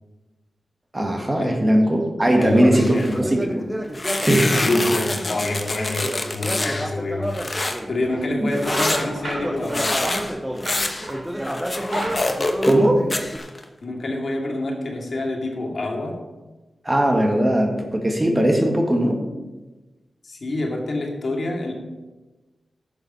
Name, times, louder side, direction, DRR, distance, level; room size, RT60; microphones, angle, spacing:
voice 1, 0.9-3.7 4.2-4.7 8.4-8.5 12.6-13.1 16.8-19.3, right 1 dB, 25° right, 3 dB, 1.7 m, -19 dB
Conversation, 2.2-8.0 8.5-13.4, equal, 5° right, 0.8 m, -31 dB
voice 2, 2.4-3.1 4.5-9.9 13.8-16.2 20.2-21.7, left 2 dB, 60° left, 1 dB, 2.1 m, -26 dB
sound 1, 2.7-3.2 3.9-6.9 7.3-7.8 8.5-12.8 13.1-13.6, left 2 dB, 35° left, 1.1 m, -26 dB
sound 2, 8.0-8.2 8.6-11.3 11.7-13.3, right 2 dB, 85° right, 3.0 m, -32 dB
11.5 x 7.1 x 5.7 m, 1.2 s
wide cardioid pair, 85°, 0 cm